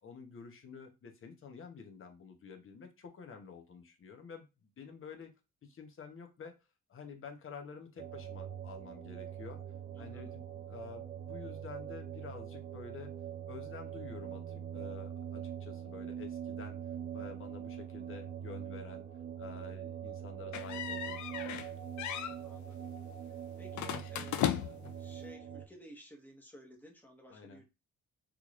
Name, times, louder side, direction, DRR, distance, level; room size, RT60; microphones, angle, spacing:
voice 1, 0.0-5.3 5.6-6.6 6.9-9.6 10.0-13.1 13.5-16.8 17.1-19.1 19.4-21.9 27.3-27.6, left 6 dB, 45° left, 4 dB, 0.9 m, -49 dB
sound 1, 8.0-25.7, right 9 dB, 45° right, 0.7 m, -43 dB
voice 2, 10.0-10.3 22.4-22.9 23.6-24.6 24.9-27.6, equal, 5° left, 1 dB, 1.1 m, -55 dB
sound 2, 20.5-21.7 22.0-22.4 23.7-24.9, left 11 dB, 70° left, 0.5 m, -36 dB
3.6 x 3.1 x 2.4 m, 0.26 s
cardioid pair, 90°, 30 cm